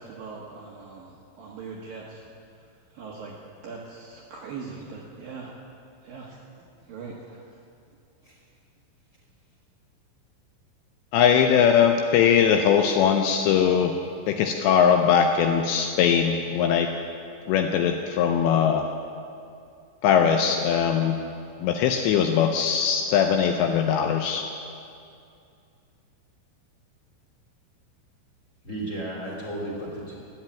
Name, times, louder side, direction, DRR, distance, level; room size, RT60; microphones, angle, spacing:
voice 1, 0.0-2.2 2.6-2.7 2.9-5.5 6.0-7.4, right 4 dB, 70° right, -2 dB, 2.2 m, -41 dB
voice 2, 11.1-14.0 14.3-16.9 17.5-18.9 20.0-21.2 21.6-24.4, left 8 dB, 80° left, 4 dB, 2.6 m, -21 dB
voice 3, 28.6-30.1, right 1 dB, 25° left, -3 dB, 1.6 m, -34 dB
13.5 x 9.5 x 9.0 m, 2.5 s
omnidirectional pair, 5.6 m